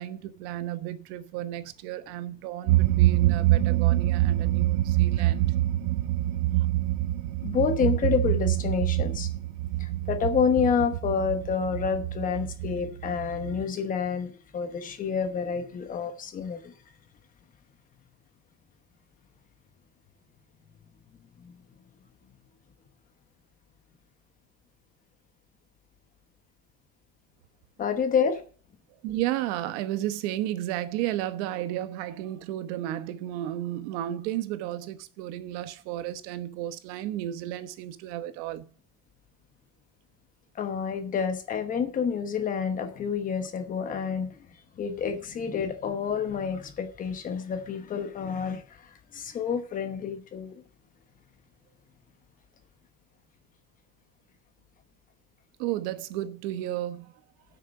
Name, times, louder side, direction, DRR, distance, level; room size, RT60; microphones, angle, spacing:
voice 1, 0.0-5.5 29.0-38.6 55.6-57.1, right 13 dB, 80° right, 1.1 m, -33 dB
sound 1, 2.7-13.6, right 15 dB, 65° right, 0.6 m, -25 dB
voice 2, 7.4-9.3 9.8-16.7 21.4-21.6 27.8-28.4 40.5-44.4 44.8-50.6, left 6 dB, 25° left, 1.0 m, -28 dB
8.6 x 6.5 x 7.9 m
cardioid pair, 180°, 33 cm